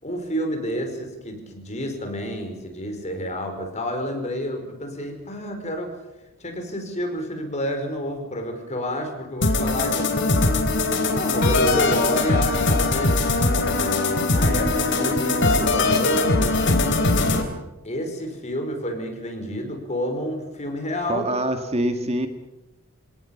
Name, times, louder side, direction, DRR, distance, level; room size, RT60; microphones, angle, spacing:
voice 1, 0.0-5.9 6.4-10.5 11.1-17.0 17.8-21.3, equal, 30° left, 5 dB, 5.0 m, -29 dB
sound 1, 9.4-17.4, left 2 dB, 55° left, 3.4 m, -21 dB
voice 2, 21.1-22.3, right 1 dB, 30° right, 6 dB, 1.7 m, -24 dB
28.0 x 18.0 x 7.3 m, 0.99 s
head